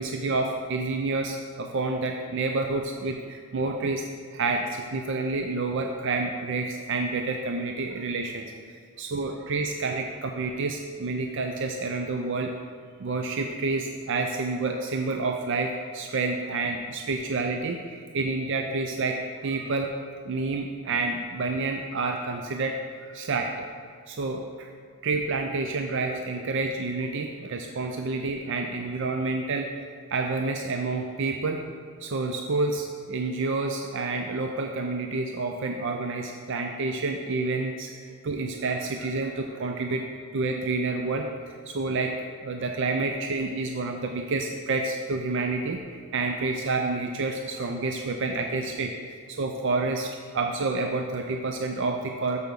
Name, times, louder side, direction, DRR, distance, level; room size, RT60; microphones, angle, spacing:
voice 1, 0.0-4.0 4.3-12.5 13.0-19.9 20.2-23.7 24.1-24.7 25.0-31.6 32.0-40.1 40.3-42.1 42.4-52.4, right 3 dB, 55° right, 3 dB, 0.5 m, -29 dB
6.8 x 5.2 x 6.2 m, 2.1 s
head